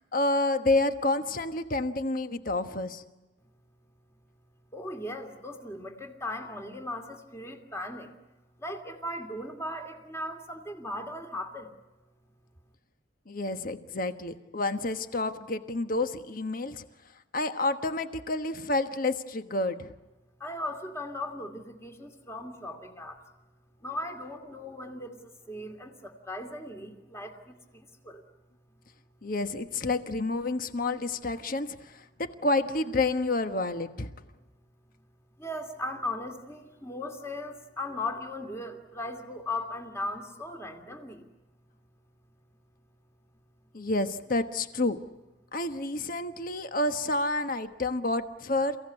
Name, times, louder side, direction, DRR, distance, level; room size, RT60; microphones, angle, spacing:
voice 1, 0.0-3.0 13.3-16.8 17.3-19.9 29.2-34.1 43.7-45.0 45.5-48.8, left 2 dB, 50° left, 9 dB, 1.3 m, -29 dB
voice 2, 4.7-8.1 8.6-11.7 20.4-23.2 23.8-25.2 25.5-28.2 35.4-41.2, left 1 dB, 15° left, 5 dB, 2.5 m, -38 dB
29.5 x 16.5 x 9.8 m, 1.1 s
head